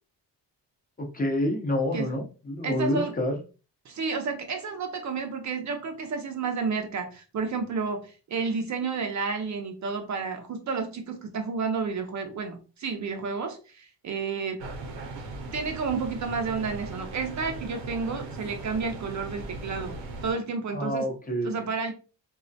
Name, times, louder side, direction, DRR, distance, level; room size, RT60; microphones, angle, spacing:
voice 1, 1.0-3.3 20.7-21.5, left 1 dB, 20° left, 1 dB, 0.5 m, -28 dB
voice 2, 2.6-3.1 3.9-14.7 15.5-21.1 21.4-21.9, right 5 dB, 45° right, 5 dB, 0.4 m, -31 dB
sound 1, 14.6-20.3, right 3 dB, 80° right, 0.7 m, -38 dB
2.3 x 2.1 x 2.6 m, 0.34 s
cardioid pair, 110°, 42 cm